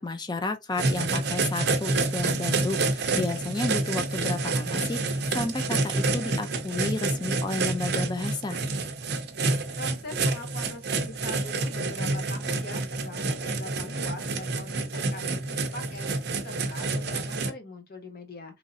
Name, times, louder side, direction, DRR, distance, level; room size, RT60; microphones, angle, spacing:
voice 1, 0.0-8.6, left 3 dB, 20° left, 0.4 m, -32 dB
sound 1, 0.8-17.5, right 3 dB, 50° right, 0.5 m, -28 dB
voice 2, 9.8-18.6, left 2 dB, 50° left, 0.7 m, -42 dB
3.0 x 2.6 x 2.6 m
head